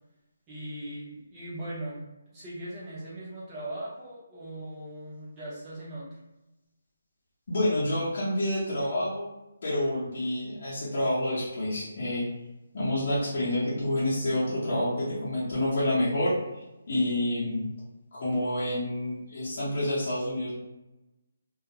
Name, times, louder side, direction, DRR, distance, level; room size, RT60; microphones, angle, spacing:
voice 1, 0.5-2.0 2.3-6.0, right 1 dB, 15° right, -8 dB, 0.7 m, -39 dB
voice 2, 7.5-9.3 9.6-12.3 12.7-16.3 16.9-17.6 18.1-20.5, left 1 dB, 40° left, -10 dB, 0.8 m, -28 dB
2.3 x 2.1 x 2.8 m, 0.97 s
hypercardioid pair, 175°, 0 cm